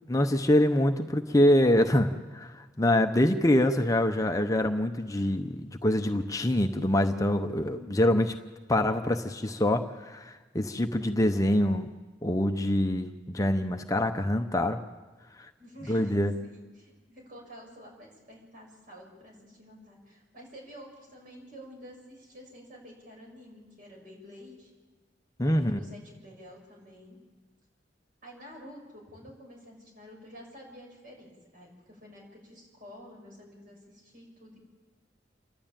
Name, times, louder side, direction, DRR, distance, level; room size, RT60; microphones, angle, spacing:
voice 1, 0.1-8.4 8.7-11.9 12.2-14.8 15.9-16.3 25.4-25.8, left 1 dB, 20° left, 6 dB, 0.7 m, -25 dB
voice 2, 7.6-8.1 15.6-24.7 25.5-27.2 28.2-34.6, equal, 50° right, -1 dB, 7.0 m, -49 dB
28.0 x 12.0 x 8.9 m, 1.3 s
head